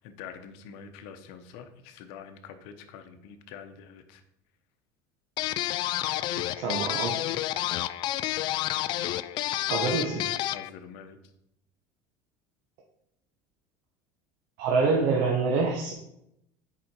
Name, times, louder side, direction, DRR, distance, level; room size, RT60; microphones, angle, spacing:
voice 1, 0.0-4.2 9.9-10.0 10.5-11.2, left 7 dB, 70° left, 8 dB, 1.0 m, -45 dB
sound 1, 5.4-10.7, left 14 dB, 50° left, 0.4 m, -30 dB
voice 2, 6.3-7.2 9.7-10.2 14.6-15.9, right 4 dB, 70° right, 1 dB, 1.2 m, -26 dB
8.4 x 5.0 x 4.5 m, 0.80 s
cardioid pair, 135°, 10 cm